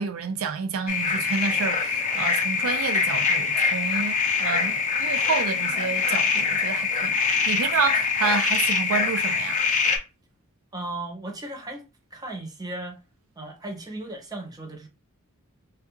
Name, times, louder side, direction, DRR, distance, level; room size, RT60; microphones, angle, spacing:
voice 1, 0.0-9.6, right 5 dB, 70° right, 0.4 m, -29 dB
sound 1, 0.9-10.0, left 5 dB, 35° left, 0.5 m, -24 dB
voice 2, 10.7-11.8 12.1-13.0 13.4-14.9, right 2 dB, 15° right, 0.7 m, -36 dB
3.4 x 2.3 x 2.9 m
head